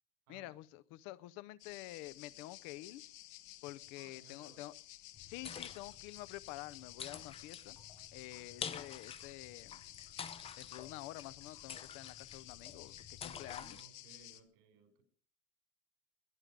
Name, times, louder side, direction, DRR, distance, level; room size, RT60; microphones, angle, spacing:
voice 1, 0.3-3.0 3.6-4.7 5.2-7.8 8.1-9.8 10.6-13.8, left 16 dB, 50° left, 17 dB, 0.7 m, -49 dB
sound 1, 1.6-14.4, left 16 dB, 80° left, 1.9 m, -54 dB
voice 2, 4.0-4.7 13.4-15.0, right 5 dB, 75° right, 8 dB, 6.5 m, -63 dB
sound 2, 5.1-13.8, left 7 dB, 15° left, 0.7 m, -49 dB
22.0 x 10.5 x 5.2 m, 0.42 s
cardioid pair, 175°, 33 cm